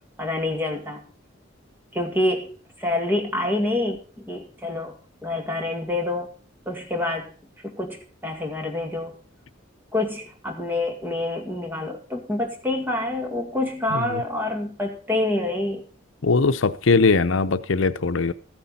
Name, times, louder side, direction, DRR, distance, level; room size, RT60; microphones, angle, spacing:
voice 1, 0.2-1.1 1.9-5.0 5.2-6.3 6.7-7.3 7.6-9.1 9.9-15.8, left 2 dB, 10° right, 2.2 m, -27 dB
voice 2, 16.2-18.3, left 4 dB, 85° left, 0.6 m, -20 dB
14.0 x 9.9 x 4.2 m
head